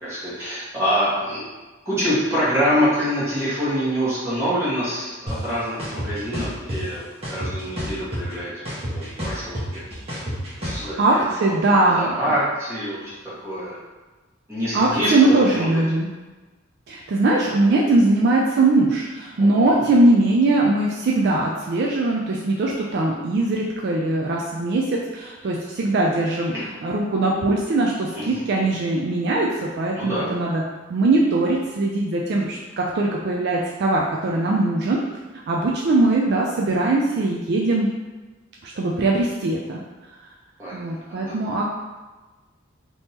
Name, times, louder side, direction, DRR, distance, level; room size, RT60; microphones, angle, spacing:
voice 1, 0.0-1.4 1.8-7.0 7.3-8.5 8.9-9.8 10.6-13.2 13.4-13.8 14.5-15.7 17.4-17.5 19.4-19.9 28.1-28.3 29.9-30.3 40.6-41.3, equal, 15° right, -11 dB, 1.4 m, -25 dB
sound 1, 5.3-5.4 5.8-6.8 7.2-8.3 8.7-10.8, equal, 30° right, 1.1 m, -29 dB
voice 2, 11.0-12.1 14.7-16.1 16.9-26.5 26.8-30.6 30.9-35.0 35.5-37.9 38.6-39.8 40.7-41.6, right 2 dB, 55° right, -2 dB, 0.4 m, -21 dB
3.5 x 2.9 x 2.8 m, 1.2 s
head